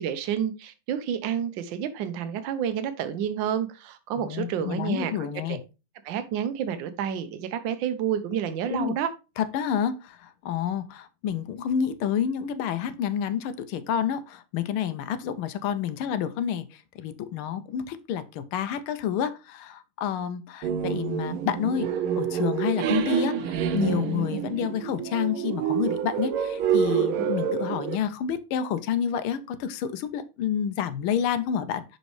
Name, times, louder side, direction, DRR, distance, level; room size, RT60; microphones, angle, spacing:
voice 1, 0.0-5.1 5.5-5.6 6.0-9.1, right 9 dB, 70° right, 1.4 m, -29 dB
voice 2, 4.2-5.6 8.7-9.0 9.4-21.9 22.2-32.0, left 8 dB, 85° left, 1.5 m, -29 dB
sound 1, 20.6-28.0, right 8 dB, 90° right, 1.5 m, -27 dB
6.1 x 5.3 x 3.1 m
omnidirectional pair, 2.3 m